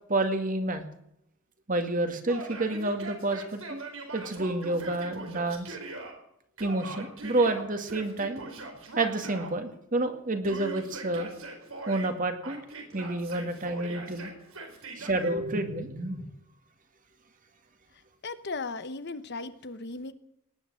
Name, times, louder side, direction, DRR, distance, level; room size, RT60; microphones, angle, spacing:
voice 1, 0.1-0.8 1.7-3.8 4.1-5.8 6.6-8.4 9.0-11.3 11.9-12.6 12.9-14.3 15.0-16.2, right 2 dB, 40° right, 7 dB, 2.0 m, -29 dB
Yell, 2.3-6.1 6.6-9.5 10.4-12.1 12.4-15.3, right 2 dB, 80° right, 4.4 m, -41 dB
voice 2, 18.2-20.1, left 3 dB, 55° left, 12 dB, 1.0 m, -36 dB
19.0 x 9.5 x 7.7 m, 0.78 s
head